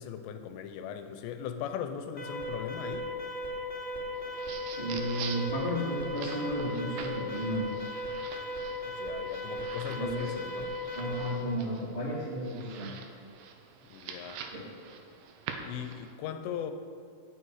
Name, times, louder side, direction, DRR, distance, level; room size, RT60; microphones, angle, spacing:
voice 1, 0.0-3.1 8.8-10.8 13.9-14.4 15.6-16.7, left 9 dB, 90° left, 8 dB, 2.9 m, -38 dB
Alarm, 2.2-11.4, equal, 25° left, 2.2 m, -37 dB
sound 1, 4.1-16.1, right 6 dB, 80° right, 2.8 m, -46 dB
voice 2, 4.7-7.7 9.9-10.3 10.9-12.9 14.5-14.7, equal, 25° right, -8 dB, 1.5 m, -33 dB
17.0 x 6.4 x 4.8 m, 2.5 s
omnidirectional pair, 5.0 m